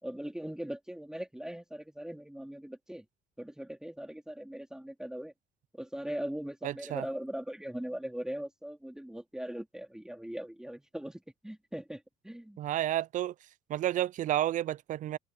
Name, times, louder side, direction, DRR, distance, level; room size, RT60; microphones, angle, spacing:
voice 1, 0.0-3.1 3.4-5.3 5.7-12.6, right 1 dB, 5° right, 3.9 m, -40 dB
voice 2, 6.6-7.0 12.6-13.3 13.7-15.2, right 12 dB, 50° right, 0.4 m, -31 dB
cardioid pair, 110°, 17 cm